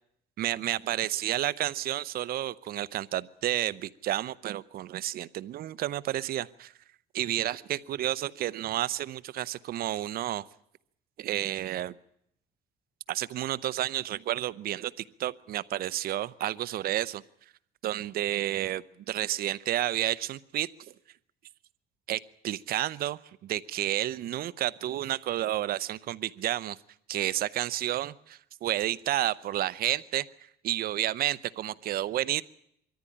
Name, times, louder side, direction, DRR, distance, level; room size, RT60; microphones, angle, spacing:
voice 1, 0.4-6.7 7.1-10.4 11.2-12.0 13.1-17.2 17.8-20.7 22.1-26.8 27.1-30.3 30.6-32.4, right 13 dB, 60° right, 16 dB, 0.8 m, -31 dB
22.5 x 14.0 x 9.9 m, 0.74 s
cardioid pair, 110°, 17 cm